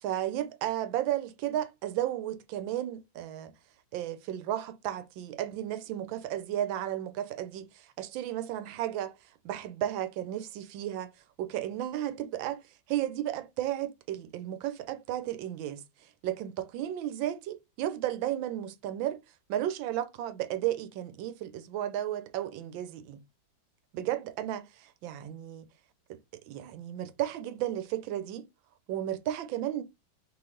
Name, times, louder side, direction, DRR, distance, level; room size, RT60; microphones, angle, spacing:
voice 1, 0.0-3.5 3.9-9.2 9.4-11.1 11.4-12.6 12.9-19.2 19.5-23.2 23.9-25.7 26.1-28.5 28.9-29.8, right 12 dB, 90° right, 1.4 m, -34 dB
3.9 x 3.1 x 3.7 m
omnidirectional pair, 2.0 m